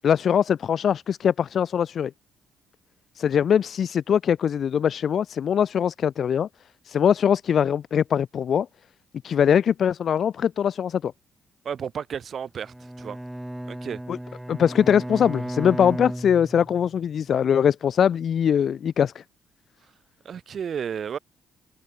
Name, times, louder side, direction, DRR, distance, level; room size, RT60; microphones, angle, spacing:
voice 1, 0.0-2.1 3.1-6.5 6.8-8.7 9.2-11.1 14.1-14.2 14.5-19.2, left 8 dB, 60° left, 1.3 m, -22 dB
voice 2, 11.6-13.2 13.7-14.0 20.2-21.2, right 7 dB, 55° right, 4.8 m, -32 dB
Bowed string instrument, 12.6-17.0, right 1 dB, 5° right, 7.5 m, -35 dB
cardioid pair, 90°, 0 cm